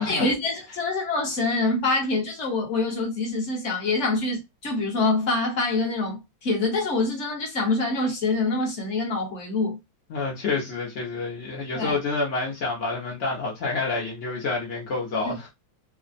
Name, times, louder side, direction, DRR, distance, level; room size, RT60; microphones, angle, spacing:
voice 1, 0.1-9.8 11.7-12.0 15.2-15.4, left 3 dB, 50° left, 1.0 m, -25 dB
voice 2, 10.1-15.5, left 3 dB, 65° left, 0.7 m, -28 dB
3.2 x 2.0 x 2.5 m
omnidirectional pair, 2.1 m